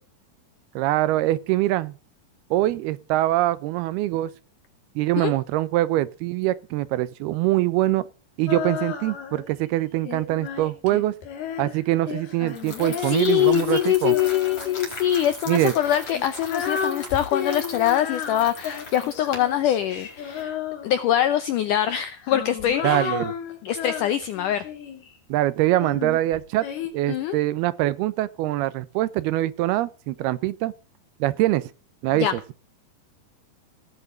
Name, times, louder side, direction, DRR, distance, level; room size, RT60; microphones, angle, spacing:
voice 1, 0.8-1.9 2.5-4.3 5.0-8.0 8.4-11.2 11.6-14.2 15.5-15.7 22.8-23.3 25.3-26.7 26.9-30.7 31.2-31.7 32.0-32.4, right 16 dB, 80° right, 2.6 m, -23 dB
Female singing, 8.5-9.5 10.1-14.9 15.7-21.2 22.0-25.1 25.8-26.9, left 8 dB, 70° left, 4.7 m, -33 dB
sound 1, 12.5-20.4, left 3 dB, 35° left, 5.1 m, -40 dB
voice 2, 13.0-20.6 20.8-23.2 23.6-24.6 27.1-27.4 32.1-32.3, left 11 dB, 85° left, 1.8 m, -23 dB
18.0 x 8.0 x 5.1 m
omnidirectional pair, 4.7 m